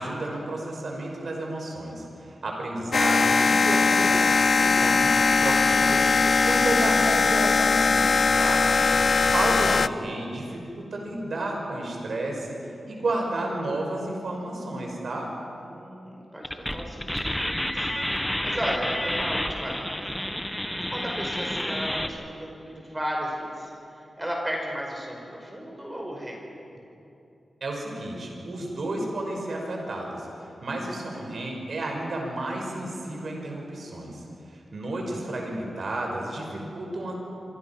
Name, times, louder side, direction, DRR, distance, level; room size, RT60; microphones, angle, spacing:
voice 1, 0.0-8.6 9.3-12.6 12.9-15.3 27.6-30.3 30.6-37.1, right 2 dB, 65° right, 0 dB, 5.8 m, -31 dB
sound 1, 2.9-9.9, left 4 dB, 50° left, 0.5 m, -20 dB
voice 2, 4.8-5.4 8.9-9.2 15.6-26.5, equal, 10° right, 0 dB, 5.0 m, -35 dB
sound 2, 16.4-22.1, equal, 5° left, 1.4 m, -29 dB
27.0 x 25.0 x 6.0 m, 2.8 s
wide cardioid pair, 110°, 0 cm